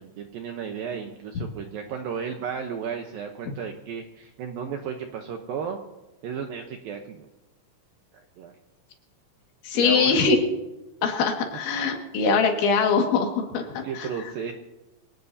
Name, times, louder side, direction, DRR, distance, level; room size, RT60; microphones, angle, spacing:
voice 1, 0.0-5.8 6.2-7.3 8.4-8.5 9.7-10.2 13.8-14.5, right 7 dB, 75° right, 4 dB, 2.1 m, -34 dB
voice 2, 9.6-10.4 11.0-14.1, left 5 dB, 80° left, 2 dB, 4.4 m, -22 dB
24.5 x 18.0 x 2.8 m, 1.0 s
omnidirectional pair, 5.3 m